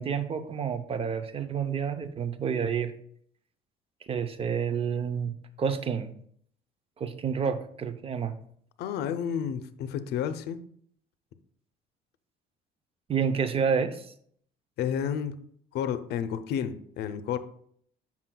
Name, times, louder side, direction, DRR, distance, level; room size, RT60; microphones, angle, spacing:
voice 1, 0.0-2.9 4.1-6.1 7.0-8.3 13.1-14.1, right 6 dB, 35° right, 11 dB, 0.6 m, -29 dB
voice 2, 8.8-10.6 14.8-15.4 15.7-17.4, left 8 dB, 75° left, 11 dB, 0.6 m, -31 dB
7.4 x 5.8 x 2.2 m, 0.63 s
cardioid pair, 110°, 17 cm